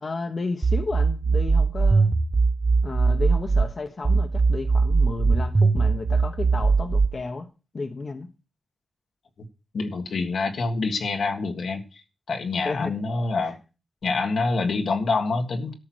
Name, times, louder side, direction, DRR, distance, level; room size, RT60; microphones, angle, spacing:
voice 1, 0.0-2.1 2.8-7.5 7.7-8.3 12.6-12.9 13.4-13.5, left 3 dB, 50° left, 1.2 m, -32 dB
sound 1, 0.6-3.6 4.0-7.1, right 4 dB, 30° right, 0.9 m, -20 dB
voice 2, 9.7-12.0 12.3-13.6 14.0-15.7, left 3 dB, 85° left, 1.9 m, -26 dB
13.0 x 5.9 x 6.3 m
wide cardioid pair, 90°, 0 cm